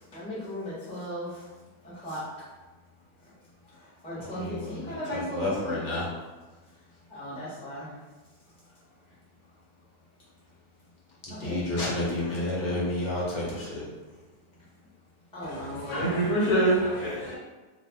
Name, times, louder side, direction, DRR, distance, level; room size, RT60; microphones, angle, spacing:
voice 1, 0.1-1.5 1.8-2.3 3.7-6.1 7.1-8.0 11.3-11.6 12.2-12.8 15.3-16.2, equal, 5° left, -10 dB, 0.7 m, -37 dB
voice 2, 4.2-6.1 11.3-13.9, left 2 dB, 55° left, -6 dB, 1.0 m, -31 dB
voice 3, 15.4-17.4, right 1 dB, 75° left, -4 dB, 1.3 m, -26 dB
2.5 x 2.5 x 3.3 m, 1.2 s
omnidirectional pair, 1.7 m